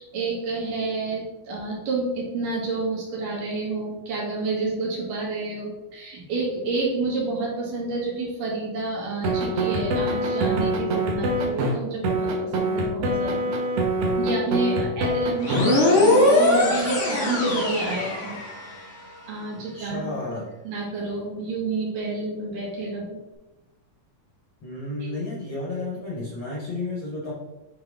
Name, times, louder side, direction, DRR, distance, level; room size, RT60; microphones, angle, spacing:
voice 1, 0.0-13.5 14.2-18.4 19.3-23.2 25.0-25.1, right 3 dB, 85° right, -3 dB, 3.3 m, -29 dB
sound 1, 9.2-11.7 12.0-15.6, right 1 dB, 65° right, 1.7 m, -24 dB
voice 2, 14.7-15.3 19.6-20.5 24.6-27.3, left 2 dB, 60° left, -4 dB, 1.3 m, -32 dB
sound 2, 15.4-18.9, left 2 dB, 75° left, 0.6 m, -21 dB
7.6 x 4.1 x 3.4 m, 1.0 s
omnidirectional pair, 3.7 m